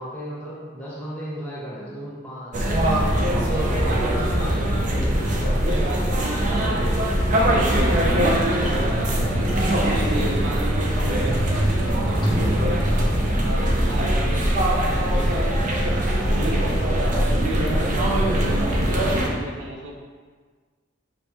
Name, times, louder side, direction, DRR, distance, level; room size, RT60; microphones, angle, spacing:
voice 1, 0.0-2.7 3.3-4.2 4.9-6.8 16.2-17.3, equal, 10° left, -8 dB, 1.1 m, -35 dB
sound 1, 2.5-19.3, right 1 dB, 40° right, 0.5 m, -21 dB
sound 2, 4.1-17.3, equal, 25° left, 0.6 m, -39 dB
voice 2, 4.9-7.2 7.5-15.9 16.3-19.9, right 1 dB, 85° right, -1 dB, 0.7 m, -34 dB
5.3 x 3.3 x 2.9 m, 1.5 s
head